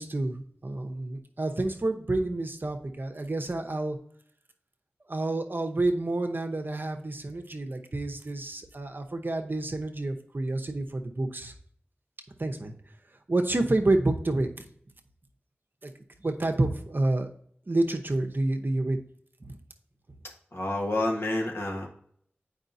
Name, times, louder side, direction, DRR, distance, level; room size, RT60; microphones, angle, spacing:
voice 1, 0.0-4.0 5.1-11.5 12.4-12.7 13.3-14.6 15.8-15.9 16.2-17.3 17.7-19.0 19.4-19.6, right 2 dB, 55° right, 5 dB, 0.8 m, -29 dB
voice 2, 20.5-21.9, left 1 dB, 65° left, -1 dB, 1.4 m, -29 dB
8.7 x 4.9 x 2.7 m, 0.63 s
wide cardioid pair, 55°, 4 cm